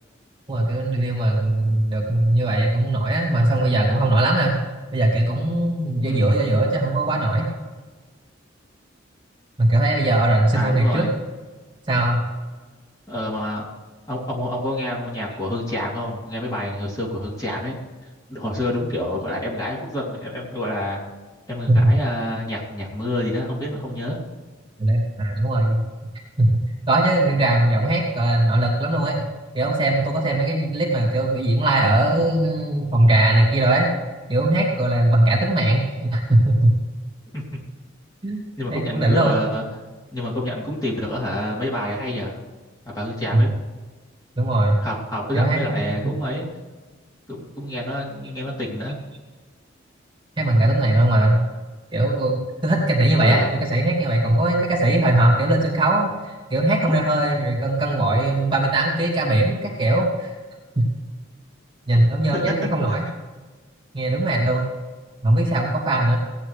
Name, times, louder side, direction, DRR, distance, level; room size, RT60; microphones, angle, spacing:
voice 1, 0.5-4.6 4.9-7.5 9.6-11.1 11.9-12.2 21.7-21.8 24.8-25.8 26.4-26.6 26.9-29.3 29.5-33.9 34.3-36.7 38.2-38.4 38.7-39.4 43.3-43.5 44.4-44.8 45.3-46.1 50.4-51.4 51.9-60.3 60.8-60.9 61.9-63.0 63.9-64.6 65.2-66.2, right 1 dB, 25° right, -2 dB, 2.5 m, -20 dB
voice 2, 6.0-6.4 10.5-11.1 13.1-13.7 14.1-17.8 18.3-21.0 21.5-24.2 37.3-37.6 38.6-39.6 40.1-42.4 42.8-43.5 44.8-46.4 47.3-49.0 53.2-53.5 62.3-62.5, left 1 dB, 20° left, -5 dB, 3.0 m, -28 dB
17.0 x 9.8 x 3.4 m, 1.3 s
head